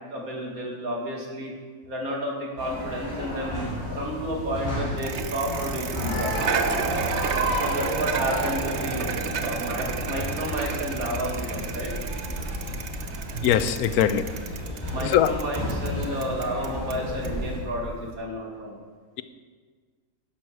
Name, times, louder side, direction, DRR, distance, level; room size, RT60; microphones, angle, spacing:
voice 1, 0.0-1.5 1.9-6.5 7.5-9.1 9.4-11.9 14.9-18.8, equal, 75° right, -1 dB, 2.7 m, -31 dB
sound 1, 2.6-17.6, equal, 15° left, 4.3 m, -32 dB
Bicycle, 5.0-18.1, right 6 dB, 55° right, 1.0 m, -33 dB
voice 2, 13.4-14.3 15.0-15.4, left 10 dB, 85° left, 13 dB, 1.1 m, -21 dB
12.0 x 11.0 x 4.8 m, 1.5 s
omnidirectional pair, 1.5 m